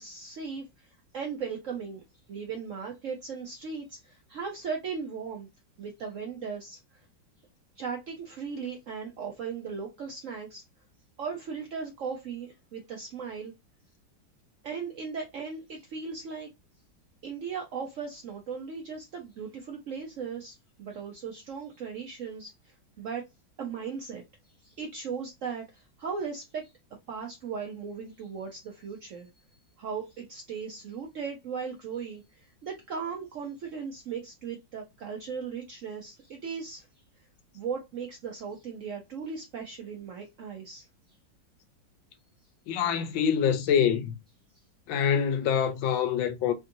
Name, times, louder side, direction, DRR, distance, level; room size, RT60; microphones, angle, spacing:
voice 1, 0.0-2.0 2.3-5.5 5.8-7.0 7.8-10.6 11.2-13.5 14.6-16.5 17.2-23.3 23.6-24.2 24.6-26.7 27.1-36.9 37.5-40.9, right 6 dB, 85° right, 0.6 m, -37 dB
voice 2, 42.7-44.2 44.9-46.5, left 8 dB, 80° left, 1.3 m, -25 dB
3.5 x 2.6 x 2.6 m
omnidirectional pair, 2.1 m